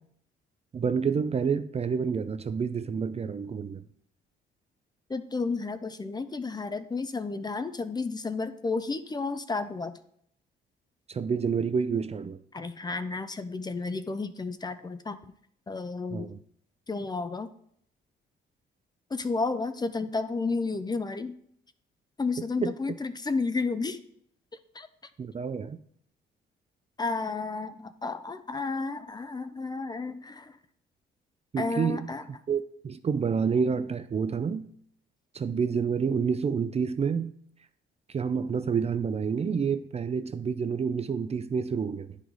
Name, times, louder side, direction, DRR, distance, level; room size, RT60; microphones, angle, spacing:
voice 1, 0.7-3.8 11.1-12.4 16.1-16.4 22.6-22.7 25.2-25.8 31.5-32.1 32.5-34.7 35.3-37.3 38.1-42.2, right 6 dB, 30° right, 0.4 m, -28 dB
voice 2, 5.1-10.0 12.5-15.2 15.7-16.3 16.9-17.5 19.1-21.3 22.2-24.0 24.7-24.9 27.0-30.6 31.6-32.2, left 3 dB, 20° left, 0.5 m, -32 dB
9.6 x 4.9 x 3.9 m
cardioid pair, 90°, 20 cm